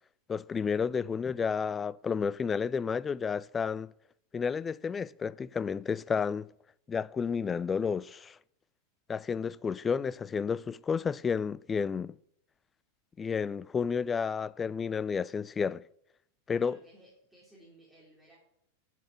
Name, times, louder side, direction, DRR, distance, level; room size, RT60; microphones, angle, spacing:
voice 1, 0.3-3.9 4.3-6.5 6.9-8.4 9.1-12.2 13.2-15.8 16.5-16.8, left 6 dB, 20° left, 0.3 m, -31 dB
voice 2, 16.6-18.4, right 1 dB, 5° right, 3.1 m, -58 dB
8.0 x 6.3 x 7.4 m
figure-of-eight pair, 90°, 0 cm